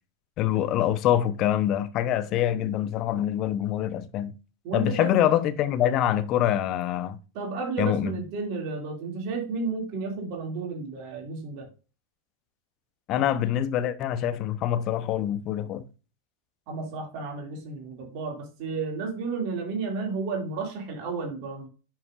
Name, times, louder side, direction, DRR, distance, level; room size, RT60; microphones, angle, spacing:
voice 1, 0.4-4.3 4.7-7.2 7.8-8.2 13.1-15.8, left 11 dB, 40° left, 0.8 m, -25 dB
voice 2, 4.6-5.3 7.3-11.7 16.7-21.7, right 4 dB, 45° right, 2.5 m, -32 dB
10.5 x 5.9 x 2.5 m
figure-of-eight pair, 90°, 0 cm